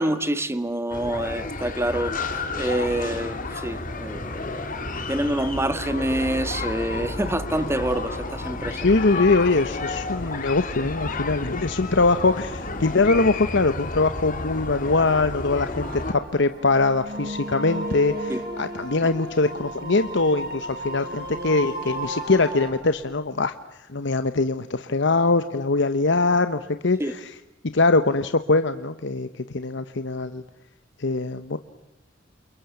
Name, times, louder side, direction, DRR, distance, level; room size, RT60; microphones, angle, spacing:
voice 1, 0.0-2.1 2.6-8.8 18.3-18.4 27.0-27.1, right 1 dB, 15° right, 1.5 m, -27 dB
sound 1, 0.9-16.1, left 3 dB, 45° left, 2.7 m, -31 dB
sound 2, 8.5-23.1, right 1 dB, 70° right, 7.5 m, -50 dB
voice 2, 8.7-23.5 23.9-27.4 27.7-30.4 31.0-31.6, left 3 dB, 65° left, 1.0 m, -22 dB
sound 3, 15.8-22.7, right 1 dB, 55° right, 6.2 m, -34 dB
29.0 x 28.5 x 7.1 m
head